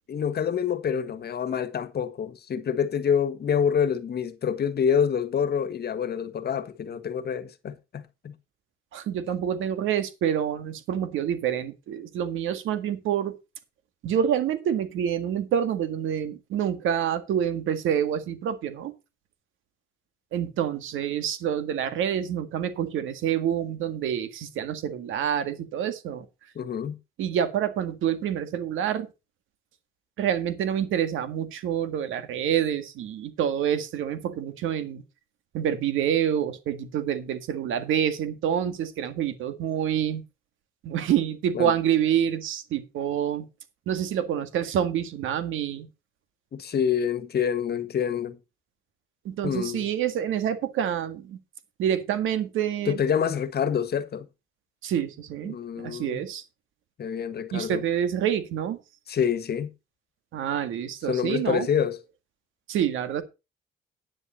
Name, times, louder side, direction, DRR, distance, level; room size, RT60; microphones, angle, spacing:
voice 1, 0.1-8.3 26.5-27.0 41.5-41.7 46.5-48.4 49.4-49.8 52.9-54.3 55.5-56.2 57.0-57.8 59.1-59.7 61.1-62.0, left 7 dB, 55° left, 1.6 m, -27 dB
voice 2, 8.9-13.4 14.0-18.9 20.3-26.3 27.2-29.1 30.2-35.0 35.5-40.2 40.8-43.5 43.9-45.9 49.3-51.4 51.8-53.0 54.8-56.4 57.5-58.8 60.3-61.7 62.7-63.2, right 9 dB, 85° right, 1.8 m, -27 dB
10.0 x 9.8 x 4.2 m
cardioid pair, 90°, 20 cm